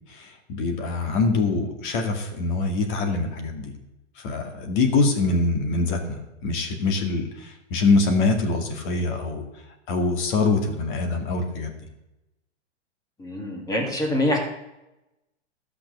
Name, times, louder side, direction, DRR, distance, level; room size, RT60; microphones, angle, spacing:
voice 1, 0.1-3.7 4.2-9.4 9.9-11.7, left 3 dB, 45° left, 5 dB, 2.2 m, -24 dB
voice 2, 13.2-14.4, left 1 dB, 10° left, 1 dB, 2.1 m, -25 dB
13.5 x 6.1 x 6.7 m, 0.95 s
hypercardioid pair, 150°, 35 cm